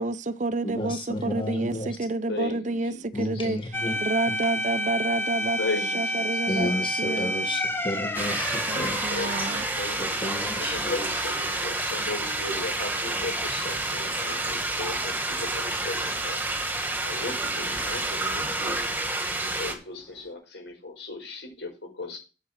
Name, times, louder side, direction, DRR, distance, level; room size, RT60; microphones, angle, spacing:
voice 1, 0.0-5.6 5.9-6.7 7.0-7.3 8.7-9.6, right 2 dB, 45° right, 0.6 m, -29 dB
voice 2, 0.6-2.0 3.1-3.9 6.5-9.0 10.0-11.0, left 1 dB, 30° left, 1.7 m, -32 dB
voice 3, 2.3-3.6 5.6-6.7 9.1-10.2 10.6-16.6 17.0-22.2, left 2 dB, 90° left, 5.5 m, -37 dB
sound 1, 3.7-12.4 12.7-12.8 17.7-18.3, equal, 15° left, 1.3 m, -31 dB
sound 2, 8.1-19.7, right 2 dB, 10° right, 1.8 m, -29 dB
9.6 x 7.2 x 4.6 m
head